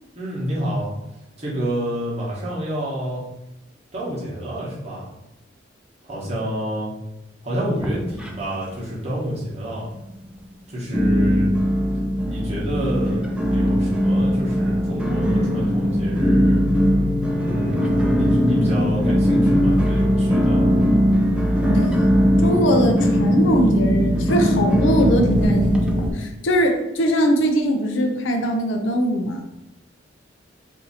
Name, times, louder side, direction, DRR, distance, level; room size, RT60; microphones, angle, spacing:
voice 1, 0.1-0.9 1.4-3.2 3.9-5.1 6.0-6.9 7.4-9.8 10.7-11.5 12.2-13.2 13.5-16.7 17.4-20.7, equal, 35° right, -6 dB, 1.0 m, -28 dB
sound 1, 7.8-8.7 9.0-9.6 10.1-10.2 10.9-26.1, equal, 5° right, 0.3 m, -19 dB
voice 2, 22.4-29.4, equal, 75° left, 4 dB, 0.5 m, -21 dB
2.7 x 2.6 x 4.0 m, 0.92 s
head